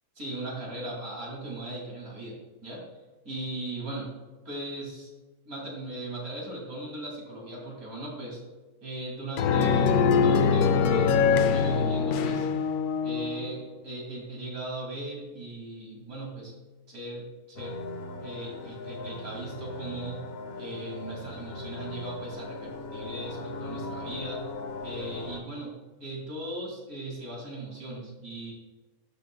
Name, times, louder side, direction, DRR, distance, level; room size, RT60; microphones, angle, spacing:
voice 1, 0.2-2.9 3.2-4.2 4.4-5.1 5.5-8.4 8.8-12.5 13.0-16.5 16.9-17.8 18.2-20.3 20.6-24.5 24.8-28.5, right 1 dB, 60° right, -3 dB, 3.1 m, -38 dB
sound 1, 9.4-13.5, left 6 dB, 75° left, 1.1 m, -23 dB
sound 2, 17.6-25.4, left 2 dB, 45° left, 0.9 m, -39 dB
12.0 x 6.7 x 2.3 m, 1.2 s
omnidirectional pair, 1.7 m